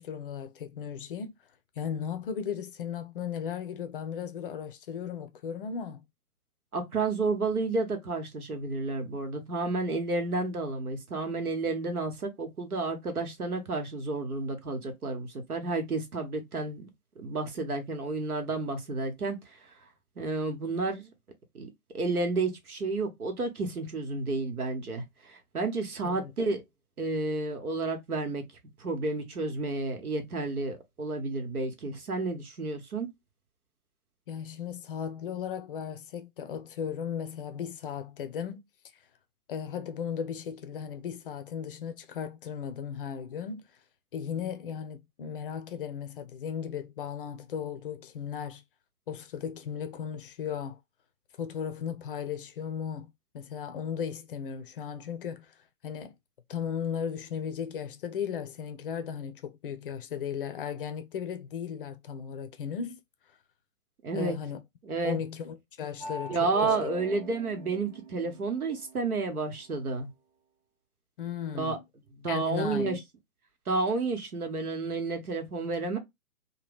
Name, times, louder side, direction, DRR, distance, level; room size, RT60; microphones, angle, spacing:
voice 1, 0.0-1.3 1.8-6.0 26.0-26.3 34.3-38.6 39.5-43.6 44.1-48.6 49.1-50.8 51.4-55.5 55.8-56.1 56.5-63.0 64.1-64.6 65.0-66.9 71.2-71.8 72.3-73.0, left 7 dB, 40° left, 0.5 m, -36 dB
voice 2, 6.7-16.9 17.2-19.4 20.2-21.1 21.5-21.7 21.9-26.6 27.0-28.4 28.8-33.1 64.0-64.4 64.8-65.2 66.3-70.1 71.5-71.8 72.2-73.0 73.7-76.0, right 3 dB, 85° right, 1.2 m, -31 dB
sound 1, 66.0-68.9, right 3 dB, 30° right, 0.6 m, -41 dB
2.9 x 2.2 x 3.3 m
figure-of-eight pair, 130°, 44 cm